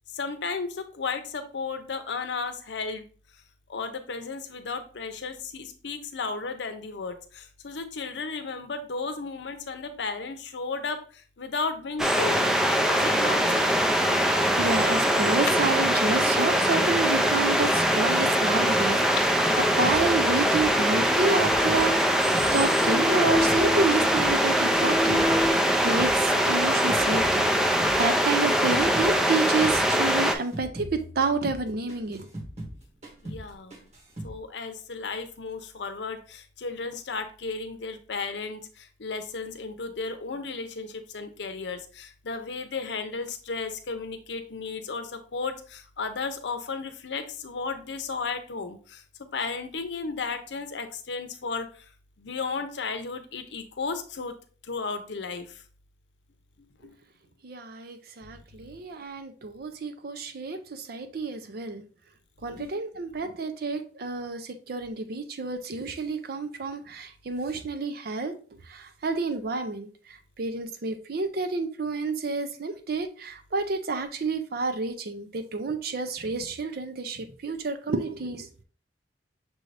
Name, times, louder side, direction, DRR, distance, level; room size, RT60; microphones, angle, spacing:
voice 1, 0.1-3.0 3.7-12.5 12.9-13.7 33.2-33.8 34.2-51.9 52.2-54.3 54.6-55.6 56.6-56.9 58.2-58.8 62.6-62.7 63.1-63.2, left 4 dB, 80° left, 0.7 m, -34 dB
sound 1, 12.0-30.4, equal, 5° right, 0.4 m, -23 dB
voice 2, 14.5-19.0 19.8-22.2 22.5-32.3 57.4-61.8 62.4-68.3 68.7-78.5, right 3 dB, 60° right, 0.6 m, -29 dB
sound 2, 19.8-22.5 22.8-25.5 25.8-29.1 29.4-29.8 30.1-32.8 33.0-33.5 33.7-34.4, equal, 40° right, 1.3 m, -39 dB
sound 3, 20.4-25.5, equal, 20° left, 0.9 m, -31 dB
6.1 x 2.6 x 3.2 m
head